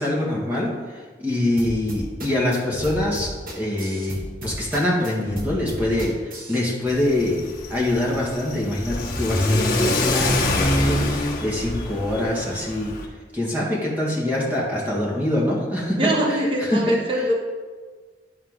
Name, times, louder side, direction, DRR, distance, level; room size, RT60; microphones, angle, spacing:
voice 1, 0.0-3.3 3.5-7.4 7.7-12.9 13.3-16.4 16.7-17.0, left 1 dB, 10° right, -5 dB, 1.7 m, -24 dB
sound 1, 1.6-6.6, equal, 50° right, 1.3 m, -34 dB
Car / Accelerating revving vroom, 6.9-13.0, left 1 dB, 50° left, 1.3 m, -25 dB
voice 2, 16.0-17.3, equal, 30° right, -1 dB, 1.1 m, -22 dB
11.0 x 4.5 x 3.7 m, 1.5 s
head